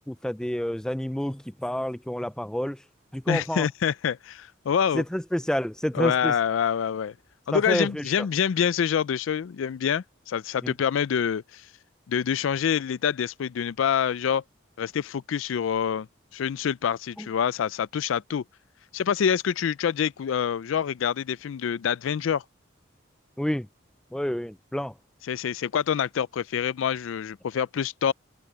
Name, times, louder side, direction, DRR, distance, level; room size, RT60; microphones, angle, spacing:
voice 1, 0.1-2.8 3.1-3.7 4.9-6.3 7.5-8.0 10.6-10.7 17.2-17.3 23.4-23.7 24.1-24.9, equal, 5° left, 0.3 m, -29 dB
voice 2, 3.3-5.0 5.9-7.1 7.5-11.7 12.1-14.4 14.8-16.1 16.3-18.4 18.9-22.4 25.3-28.1, left 8 dB, 85° left, 0.4 m, -26 dB
open air
head